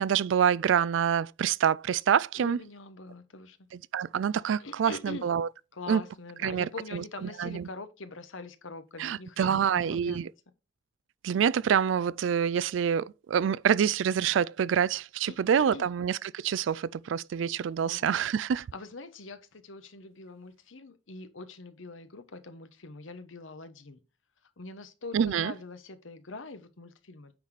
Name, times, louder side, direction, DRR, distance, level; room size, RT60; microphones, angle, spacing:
voice 1, 0.0-2.6 3.9-5.5 5.9-6.0 6.4-7.7 9.0-10.3 11.2-18.7 25.1-25.5, right 8 dB, 75° right, 0.3 m, -26 dB
voice 2, 2.3-3.6 4.6-5.3 5.7-10.2 15.3-15.4 15.7-15.9 17.8-18.0 18.7-24.0 24.6-27.3, left 3 dB, 90° left, 1.1 m, -43 dB
9.3 x 4.1 x 4.8 m
head